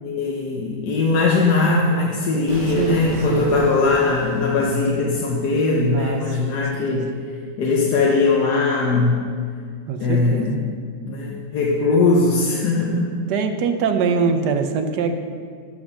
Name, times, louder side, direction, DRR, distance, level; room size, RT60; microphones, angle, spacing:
voice 1, 0.0-7.1 7.6-9.3 10.0-10.6 11.0-13.1, left 3 dB, 70° left, -2 dB, 1.5 m, -20 dB
Explosion, 2.5-5.4, equal, 25° right, 1.8 m, -34 dB
voice 2, 5.9-7.0 9.9-10.6 13.3-15.1, right 5 dB, 75° right, 7 dB, 1.4 m, -23 dB
14.0 x 5.3 x 6.4 m, 2.1 s
omnidirectional pair, 1.8 m